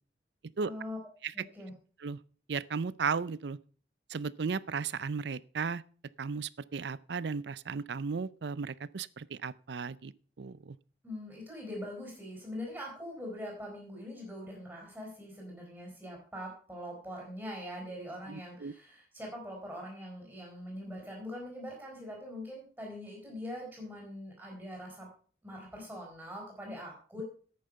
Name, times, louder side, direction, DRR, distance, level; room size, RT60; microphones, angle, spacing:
voice 1, 0.6-1.0 1.3-1.7 11.0-25.1 25.4-27.2, left 1 dB, 5° right, -2 dB, 4.7 m, -43 dB
voice 2, 2.5-3.6 4.1-5.8 6.2-10.1 10.4-10.8 18.3-18.7, right 5 dB, 70° right, 20 dB, 0.5 m, -35 dB
11.0 x 8.8 x 5.6 m, 0.41 s
head